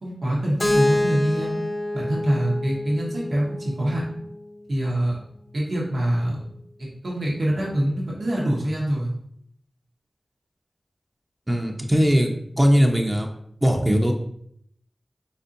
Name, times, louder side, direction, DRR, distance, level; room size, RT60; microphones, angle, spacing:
voice 1, 0.0-1.6 1.9-4.0 4.7-5.2 5.5-6.4 6.8-9.1, right 1 dB, 85° right, -4 dB, 1.3 m, -25 dB
Keyboard (musical), 0.6-4.5, left 1 dB, 45° left, 0.6 m, -27 dB
voice 2, 11.5-12.3 12.6-13.3 13.6-14.1, equal, 15° right, 2 dB, 0.7 m, -19 dB
4.4 x 4.1 x 2.6 m, 0.69 s
cardioid pair, 45°, 0 cm